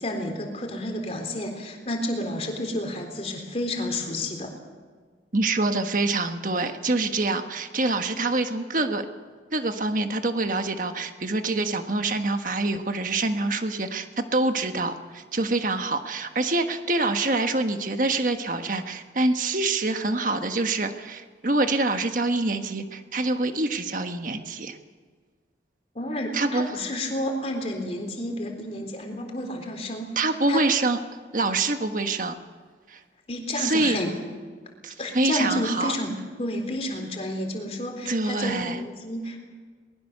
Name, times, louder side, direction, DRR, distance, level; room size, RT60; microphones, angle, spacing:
voice 1, 0.0-4.5 26.0-30.1 30.5-30.7 33.3-34.1 35.0-39.4, left 1 dB, 35° left, 3 dB, 3.7 m, -30 dB
voice 2, 5.3-9.0 9.5-24.8 26.3-26.8 30.1-31.0 31.3-32.3 32.9-33.0 33.6-34.0 34.8-36.0 38.0-38.8, right 2 dB, 45° right, 7 dB, 1.4 m, -26 dB
22.5 x 20.5 x 6.7 m, 1.5 s
head